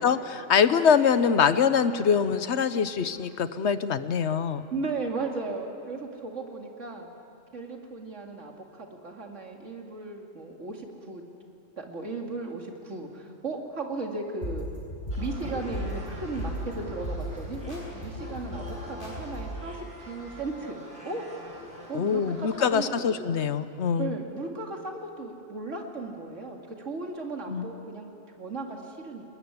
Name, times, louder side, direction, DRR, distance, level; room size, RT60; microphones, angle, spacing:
voice 1, 0.0-4.6 21.9-24.2 27.5-27.7, left 7 dB, 60° left, 12 dB, 1.1 m, -24 dB
voice 2, 4.7-7.1 7.5-11.2 11.8-14.7 15.2-21.2 21.9-23.2 24.0-28.1 28.4-29.2, right 3 dB, 65° right, 1 dB, 2.7 m, -36 dB
sound 1, 14.4-19.7, equal, 40° left, 7.1 m, -36 dB
sound 2, 15.1-23.0, left 1 dB, 25° right, 4.9 m, -44 dB
22.0 x 20.0 x 9.7 m, 2.7 s
omnidirectional pair, 1.3 m